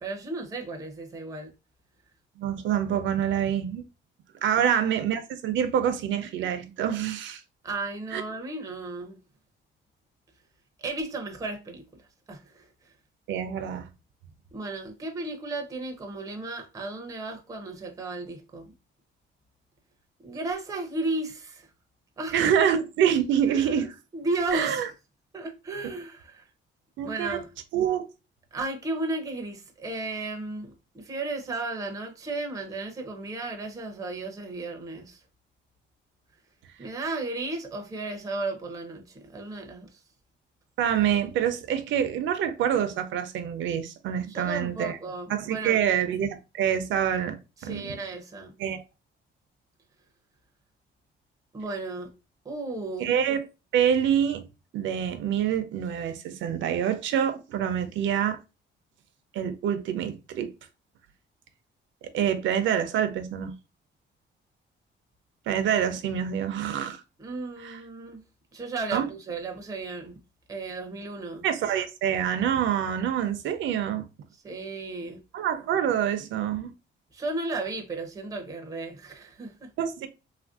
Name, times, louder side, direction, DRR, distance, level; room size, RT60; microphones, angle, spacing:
voice 1, 0.0-1.5 4.6-4.7 7.6-9.2 10.8-12.0 12.3-12.7 14.5-18.7 20.2-21.7 22.2-22.4 23.5-23.9 24.1-24.8 25.3-26.4 27.0-27.5 28.5-35.2 36.8-40.0 44.3-45.8 47.6-48.5 51.5-52.1 52.4-53.1 67.2-68.2 68.5-70.2 70.5-71.5 74.4-75.2 77.1-79.7, right 2 dB, 15° right, 0.5 m, -34 dB
voice 2, 2.4-3.8 4.4-7.4 8.1-8.2 13.3-13.9 22.3-23.9 24.5-24.9 25.8-25.9 27.0-27.4 27.7-28.0 40.8-45.0 45.3-48.0 48.6-48.8 53.0-53.4 53.7-54.4 54.7-58.4 59.3-60.5 62.0-63.5 65.5-67.0 67.6-67.8 68.9-69.1 71.4-74.1 75.3-76.7 79.8-80.1, right 9 dB, 70° right, 0.4 m, -26 dB
3.2 x 2.5 x 2.3 m
cardioid pair, 180°, 20 cm